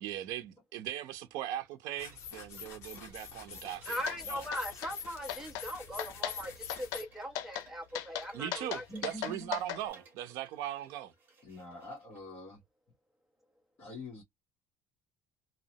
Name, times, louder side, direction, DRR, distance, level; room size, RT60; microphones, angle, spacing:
voice 1, 0.0-4.0 4.3-4.4 8.3-11.1, right 12 dB, 70° right, 0.5 m, -39 dB
sound 1, 1.7-12.2, right 4 dB, 35° right, 1.0 m, -60 dB
sound 2, 2.0-7.0, left 6 dB, 50° left, 0.7 m, -45 dB
voice 2, 3.9-8.8, equal, 5° right, 0.7 m, -40 dB
sound 3, 4.1-4.2 4.5-4.9 5.3-5.7 6.0-6.4 6.7-7.0 7.4-7.7 7.9-9.8, left 11 dB, 80° left, 0.6 m, -37 dB
voice 3, 8.9-9.6 11.4-12.6 13.8-14.2, left 1 dB, 30° left, 1.1 m, -45 dB
2.8 x 2.0 x 2.7 m
cardioid pair, 175°, 6 cm